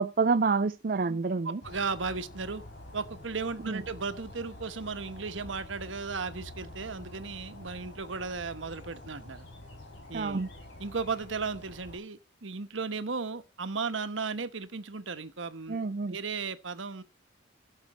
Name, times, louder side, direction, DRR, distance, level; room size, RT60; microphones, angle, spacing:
voice 1, 0.0-1.6 3.7-3.8 10.1-10.5 15.7-16.2, right 4 dB, 50° right, 0.5 m, -28 dB
voice 2, 1.4-2.6 2.9-9.5 10.1-10.4 10.8-17.0, right 4 dB, 85° right, 1.2 m, -35 dB
sound 1, 1.6-12.0, left 1 dB, 65° left, 4.4 m, -47 dB
16.5 x 6.6 x 4.3 m
head